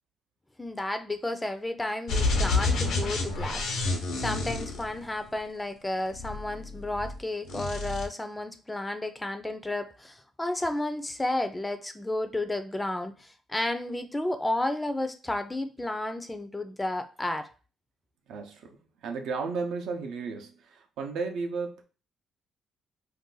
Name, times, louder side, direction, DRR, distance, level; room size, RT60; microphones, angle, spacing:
voice 1, 0.6-3.7 4.2-17.5, left 1 dB, 15° left, 0.4 m, -32 dB
sound 1, 2.1-5.4 6.1-7.2 7.5-8.1, left 3 dB, 80° left, 0.8 m, -29 dB
voice 2, 18.3-21.8, right 4 dB, 80° right, 0.5 m, -34 dB
2.6 x 2.3 x 3.8 m
cardioid pair, 90°, 0 cm